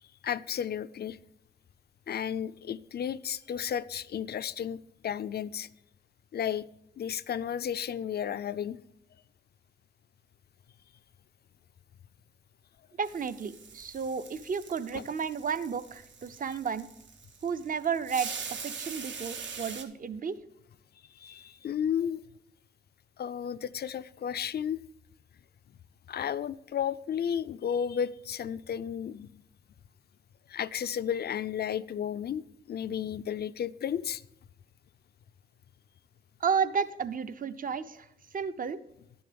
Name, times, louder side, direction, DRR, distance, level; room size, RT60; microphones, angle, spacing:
voice 1, 0.2-1.2 2.1-5.7 6.3-6.7 7.0-8.8 14.9-15.1 21.2-22.2 23.2-24.8 26.1-29.4 30.5-34.2, left 8 dB, 60° left, 16 dB, 0.4 m, -33 dB
voice 2, 13.0-16.9 17.4-20.4 36.4-38.1 38.3-38.8, right 6 dB, 50° right, 13 dB, 0.5 m, -32 dB
sound 1, 13.0-19.8, right 6 dB, 80° right, 0.9 m, -43 dB
11.0 x 7.0 x 5.1 m, 0.77 s
wide cardioid pair, 105°, 19 cm